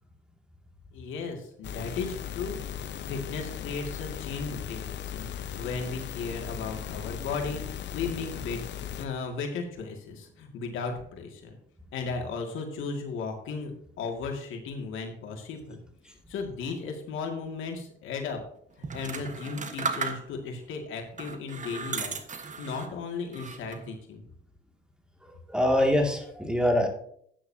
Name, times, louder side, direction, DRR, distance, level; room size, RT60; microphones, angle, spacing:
voice 1, 0.9-2.6 3.1-7.6 7.9-8.6 9.0-11.6 11.9-13.7 14.0-15.8 16.3-18.4 18.8-22.2 22.6-24.2, left 4 dB, 85° left, 3 dB, 2.2 m, -35 dB
sound 1, 1.6-9.1, left 9 dB, 65° left, 0.7 m, -37 dB
sound 2, 18.8-20.6 21.1-22.9 23.3-24.0, right 5 dB, 40° right, 1.4 m, -35 dB
voice 2, 25.2-26.9, left 1 dB, 5° right, 2 dB, 2.3 m, -24 dB
12.5 x 9.1 x 2.8 m, 0.65 s
cardioid pair, 90°, 20 cm